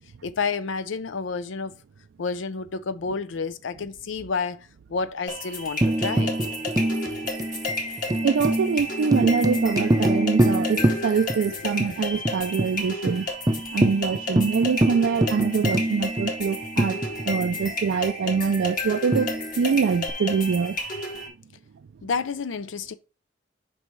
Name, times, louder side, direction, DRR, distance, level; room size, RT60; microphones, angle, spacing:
voice 1, 0.2-1.7 2.2-6.4 11.5-11.7 22.0-22.9, left 4 dB, 90° left, 0.5 m, -30 dB
sound 1, 5.3-21.3, left 2 dB, 45° left, 2.4 m, -32 dB
Tambourine, 5.8-11.5 11.8-11.9 12.2-12.7 13.1-13.2 13.5-17.6 19.1-20.1, right 1 dB, 20° right, 0.5 m, -25 dB
voice 2, 8.2-13.3 13.7-17.0 17.3-20.8, right 5 dB, 75° right, 0.4 m, -24 dB
8.8 x 5.4 x 3.1 m
head